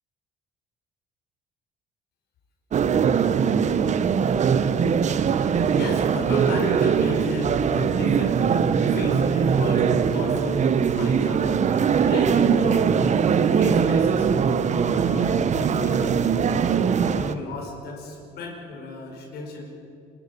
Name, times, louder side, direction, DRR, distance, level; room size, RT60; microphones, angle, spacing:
sound 1, 2.7-17.3, right 7 dB, 45° right, 1.0 m, -21 dB
voice 1, 5.7-8.5 8.8-11.7 12.0-14.3 14.8-16.3 16.7-19.7, left 2 dB, 75° left, -1 dB, 5.1 m, -33 dB
27.5 x 13.5 x 8.5 m, 2.8 s
cardioid pair, 110°, 17 cm